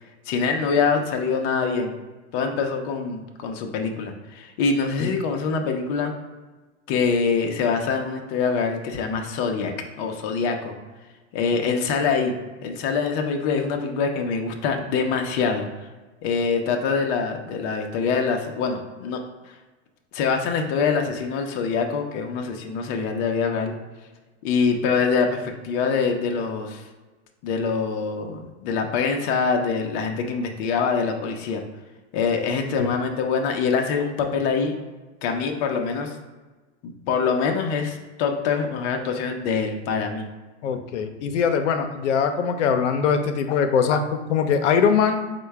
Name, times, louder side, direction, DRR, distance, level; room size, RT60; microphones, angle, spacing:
voice 1, 0.3-1.9 2.3-6.1 6.9-9.7 10.0-10.7 11.3-12.3 12.6-15.7 16.2-19.2 20.1-23.7 24.4-26.8 27.4-31.6 32.1-34.7 35.2-36.2 36.8-40.3, left 5 dB, 35° left, 3 dB, 0.5 m, -24 dB
voice 2, 40.6-45.3, left 6 dB, 80° left, 7 dB, 0.6 m, -22 dB
4.4 x 2.2 x 4.5 m, 1.2 s
hypercardioid pair, 135°, 35 cm